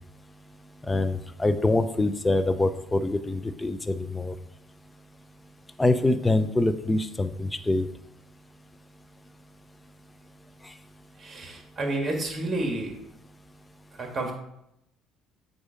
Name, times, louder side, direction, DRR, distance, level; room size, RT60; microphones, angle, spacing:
voice 1, 0.9-4.3 5.8-7.9, left 2 dB, 15° left, 10 dB, 0.5 m, -25 dB
voice 2, 11.2-12.9 13.9-14.3, right 2 dB, 30° right, 2 dB, 1.7 m, -30 dB
7.9 x 2.7 x 5.0 m, 0.80 s
supercardioid pair, 90°, 0 cm